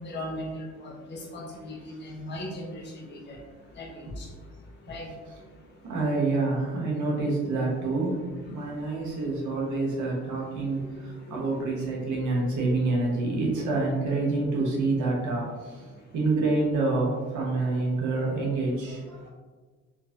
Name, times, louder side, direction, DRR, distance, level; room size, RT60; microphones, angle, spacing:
voice 1, 0.0-3.4 3.8-4.3 4.9-5.1 11.3-11.4, left 1 dB, 35° left, -2 dB, 0.7 m, -38 dB
voice 2, 5.8-15.9 16.1-19.3, right 3 dB, 75° right, -3 dB, 1.1 m, -27 dB
3.8 x 2.6 x 2.5 m, 1.4 s
cardioid pair, 90°, 30 cm